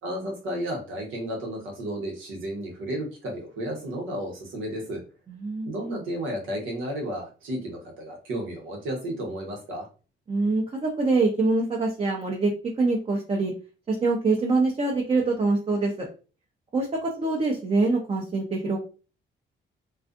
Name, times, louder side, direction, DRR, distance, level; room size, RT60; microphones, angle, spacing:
voice 1, 0.0-5.0 5.6-9.9, equal, 85° right, 0 dB, 1.1 m, -33 dB
voice 2, 5.3-5.7 10.3-13.5 13.9-16.1 16.7-18.8, right 3 dB, 30° right, 0 dB, 0.6 m, -24 dB
2.4 x 2.4 x 2.4 m, 0.35 s
cardioid pair, 90°, 20 cm